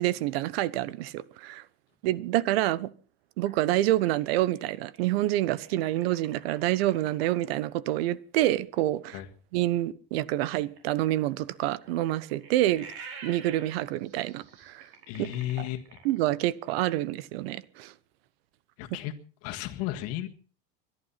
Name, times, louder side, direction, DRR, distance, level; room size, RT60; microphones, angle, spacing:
voice 1, 0.0-1.6 2.0-2.9 3.4-9.2 9.5-12.9 13.2-14.9 15.2-15.3 15.6-15.7 16.0-17.9, right 15 dB, 85° right, 1.1 m, -27 dB
sound 1, 3.4-7.5 10.4-16.4, right 5 dB, 50° right, 5.5 m, -48 dB
voice 2, 15.1-15.8 18.8-19.1 19.4-20.3, left 14 dB, 55° left, 1.8 m, -33 dB
22.0 x 11.5 x 5.8 m
cardioid pair, 150°, 29 cm